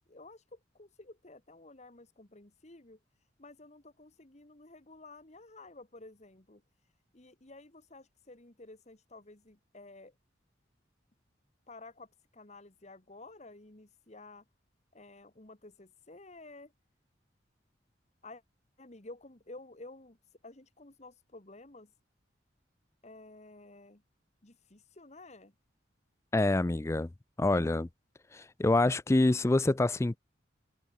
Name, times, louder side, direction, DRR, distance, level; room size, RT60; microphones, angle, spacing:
voice 1, 0.1-3.0 3.4-6.6 7.1-10.2 11.7-14.5 14.9-16.7 18.2-18.4 18.8-20.2 20.4-21.9 23.0-24.0 24.4-25.5, left 2 dB, 35° left, 1.8 m, -52 dB
voice 2, 26.3-27.1 27.4-27.9 28.3-30.2, left 2 dB, 15° left, 0.4 m, -26 dB
head